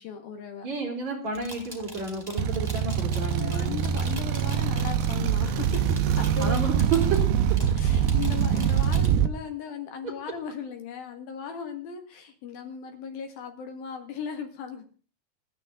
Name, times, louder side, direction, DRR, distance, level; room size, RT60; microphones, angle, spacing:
voice 1, 0.0-0.7 3.4-6.6 7.8-14.8, left 7 dB, 65° left, 5 dB, 3.5 m, -37 dB
voice 2, 0.6-3.8 6.4-7.3, right 4 dB, 45° right, 0 dB, 5.0 m, -30 dB
sound 1, 1.3-9.1, equal, 5° right, 3.2 m, -43 dB
sound 2, 2.4-9.3, right 9 dB, 75° right, 2.8 m, -24 dB
28.0 x 9.8 x 3.8 m, 0.38 s
omnidirectional pair, 4.7 m